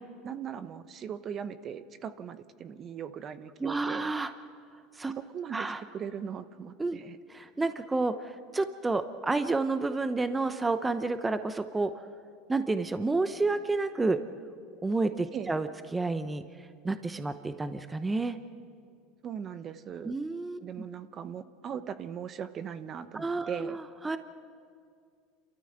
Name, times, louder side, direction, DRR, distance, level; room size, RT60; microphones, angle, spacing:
voice 1, 0.2-4.1 5.2-5.7 5.9-7.2 15.3-15.5 19.2-20.1 20.6-23.8, right 8 dB, 40° right, 12 dB, 1.0 m, -39 dB
voice 2, 3.6-4.3 4.9-5.1 5.5-5.8 6.8-7.0 7.3-11.9 12.5-14.2 14.8-16.4 16.8-18.4 20.0-20.6 23.1-24.2, right 3 dB, 15° right, 10 dB, 0.8 m, -30 dB
28.5 x 13.5 x 8.0 m, 2.2 s
supercardioid pair, 105°, 0 cm